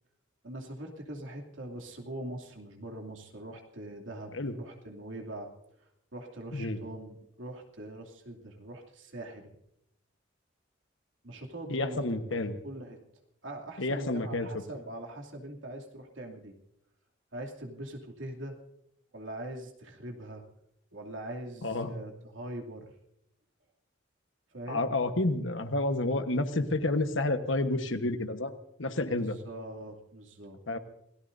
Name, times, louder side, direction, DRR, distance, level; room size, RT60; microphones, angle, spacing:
voice 1, 0.4-5.5 5.8-9.5 11.2-12.2 12.6-13.0 13.4-16.5 17.3-18.6 19.1-20.4 20.9-22.9 24.5-24.9 29.1-30.6, right 1 dB, 85° right, 1 dB, 2.7 m, -42 dB
voice 2, 11.7-12.5 13.8-14.5 21.6-21.9 24.7-28.5 28.8-29.4 30.7-30.8, left 2 dB, 80° left, 8 dB, 1.3 m, -30 dB
28.0 x 17.5 x 2.7 m, 0.78 s
head